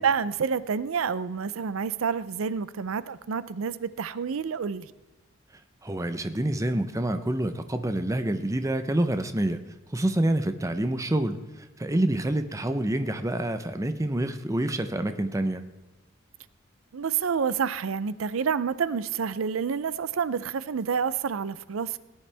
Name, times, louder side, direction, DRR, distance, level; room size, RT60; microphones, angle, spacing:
voice 1, 0.0-4.9 16.9-22.0, right 6 dB, 85° right, 17 dB, 0.5 m, -28 dB
voice 2, 5.8-9.6 9.9-15.6, right 1 dB, 15° right, 9 dB, 0.7 m, -27 dB
18.0 x 10.5 x 3.4 m, 1.1 s
head